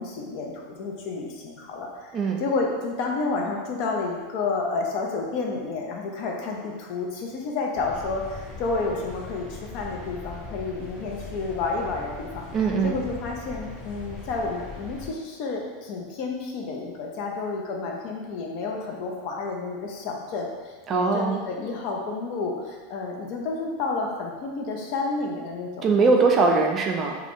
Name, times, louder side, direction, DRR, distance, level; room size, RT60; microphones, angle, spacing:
voice 1, 0.0-12.5 12.8-25.9 26.2-26.3, left 3 dB, 55° left, 0 dB, 0.5 m, -30 dB
sound 1, 7.7-15.1, left 3 dB, 40° left, 1.4 m, -40 dB
voice 2, 12.5-13.0 20.9-21.4 25.8-27.1, right 4 dB, 30° right, 2 dB, 0.4 m, -21 dB
2.5 x 2.3 x 3.5 m, 1.4 s
supercardioid pair, 120°, 0 cm